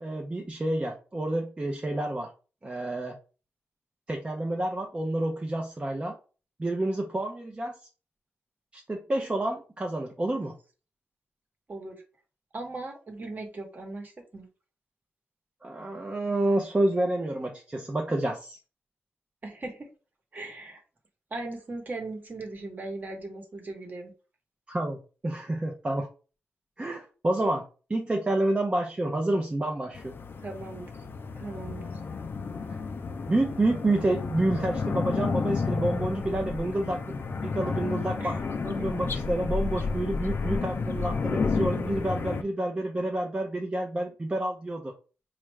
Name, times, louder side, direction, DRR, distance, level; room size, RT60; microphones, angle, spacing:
voice 1, 0.0-2.3 2.6-3.2 4.1-6.1 6.6-7.7 8.7-10.5 15.6-18.6 24.7-26.1 26.8-27.6 27.9-30.2 33.3-44.9, right 1 dB, 25° right, 1 dB, 0.5 m, -29 dB
voice 2, 11.7-12.0 12.5-14.5 19.4-19.9 20.3-20.8 21.3-24.1 30.4-31.0 31.3-31.9 38.2-38.4, right 2 dB, 40° right, 4 dB, 1.0 m, -38 dB
sound 1, 29.9-42.4, left 4 dB, 55° left, 0.4 m, -31 dB
4.4 x 2.4 x 3.1 m, 0.35 s
wide cardioid pair, 120°, 5 cm